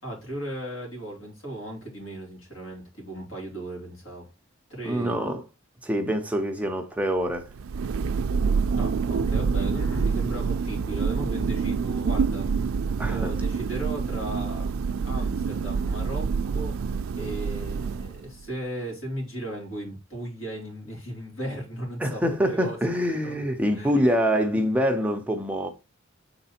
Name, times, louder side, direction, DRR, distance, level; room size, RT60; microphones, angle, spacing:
voice 1, 0.0-4.3 4.7-5.2 8.8-12.7 13.0-14.7 15.0-16.8 17.2-22.8 23.2-23.4 23.7-24.0, right 1 dB, 75° left, 3.1 m, -36 dB
voice 2, 4.8-5.4 5.8-7.5 13.0-13.3 22.0-25.7, equal, 5° right, 0.7 m, -25 dB
Thunder, 7.4-18.4, right 5 dB, 85° right, 0.4 m, -27 dB
6.5 x 4.0 x 4.3 m
head